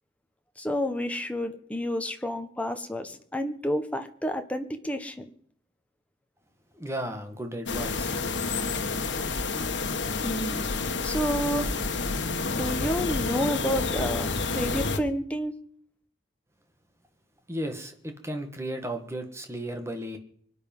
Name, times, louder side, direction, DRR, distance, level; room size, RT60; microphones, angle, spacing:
voice 1, 0.6-5.2 10.2-11.7 12.5-15.5, equal, 5° left, 1.4 m, -30 dB
voice 2, 6.7-8.2 17.5-20.2, right 1 dB, 15° right, 2.0 m, -34 dB
sound 1, 7.7-15.0, left 4 dB, 75° left, 1.5 m, -29 dB
24.5 x 10.0 x 5.6 m
head